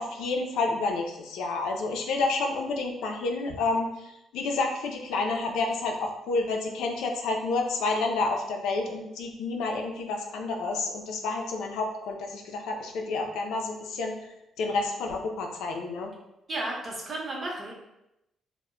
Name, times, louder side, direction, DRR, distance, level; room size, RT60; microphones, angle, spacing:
voice 1, 0.0-14.1 14.6-16.1, left 3 dB, 85° left, 2 dB, 0.4 m, -29 dB
voice 2, 16.5-17.7, right 2 dB, 35° right, -2 dB, 0.8 m, -33 dB
2.1 x 2.0 x 3.6 m, 0.89 s
cardioid pair, 90°, 0 cm